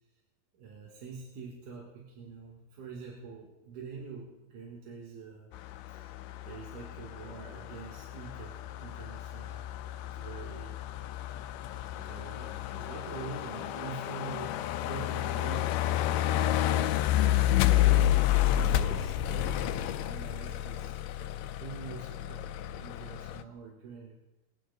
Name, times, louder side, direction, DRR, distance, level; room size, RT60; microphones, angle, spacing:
voice 1, 0.5-5.5 5.9-9.7 10.0-10.7 11.9-21.3 21.6-22.5 22.8-24.2, right 5 dB, 70° right, -1 dB, 2.9 m, -45 dB
sound 1, 5.5-23.4, left 13 dB, 80° left, 2.1 m, -30 dB
22.0 x 8.7 x 3.9 m, 1.0 s
omnidirectional pair, 3.9 m